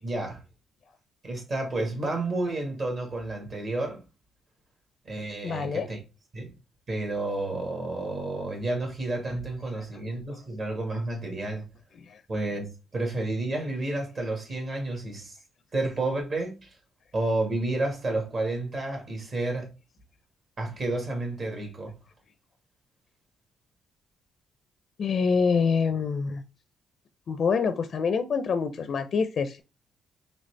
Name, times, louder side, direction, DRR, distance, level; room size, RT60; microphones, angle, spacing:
voice 1, 0.0-0.4 1.2-4.0 5.0-6.0 6.3-6.5 6.9-11.6 12.3-15.4 15.7-16.7 17.1-19.7 20.6-21.9, right 2 dB, 50° right, 1.6 m, -30 dB
voice 2, 5.4-5.9 12.0-12.2 25.0-26.4 27.3-29.6, left 5 dB, 55° left, 0.4 m, -26 dB
4.0 x 3.3 x 3.2 m
cardioid pair, 90°, 0 cm